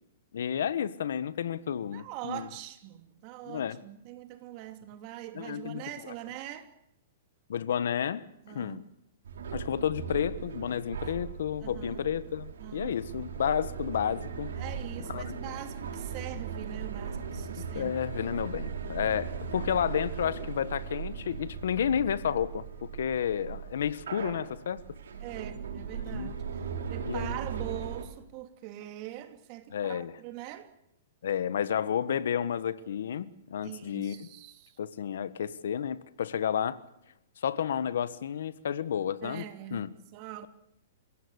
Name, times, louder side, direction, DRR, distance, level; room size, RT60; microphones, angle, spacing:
voice 1, 0.3-2.5 3.4-3.8 5.3-6.1 7.5-8.8 9.5-14.5 15.1-15.3 17.7-24.8 26.1-26.3 27.0-27.4 29.7-30.1 31.2-34.2 34.8-36.8 37.4-39.4 39.7-39.9, left 8 dB, 75° left, 1.4 m, -31 dB
voice 2, 1.9-6.7 8.4-8.8 11.6-12.0 12.6-13.0 14.6-17.9 25.2-26.4 26.9-30.7 33.6-34.8 39.2-39.8 40.1-40.5, right 13 dB, 35° right, 2.6 m, -42 dB
sound 1, 9.2-28.0, right 6 dB, 85° right, 5.7 m, -38 dB
28.5 x 17.0 x 8.3 m
hypercardioid pair, 155°, 0 cm